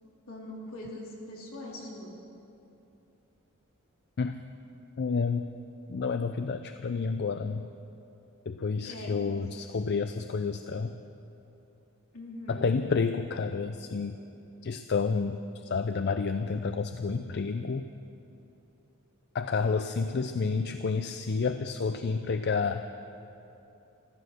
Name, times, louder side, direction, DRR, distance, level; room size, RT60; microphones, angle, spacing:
voice 1, 0.3-2.1 8.8-9.2 12.1-12.7, left 1 dB, 70° left, -3 dB, 3.3 m, -42 dB
voice 2, 5.0-5.5 5.9-7.7 8.5-10.9 12.5-14.2 14.6-17.9 19.3-22.8, left 4 dB, 50° left, 9 dB, 0.5 m, -30 dB
14.5 x 14.0 x 6.7 m, 2.8 s
head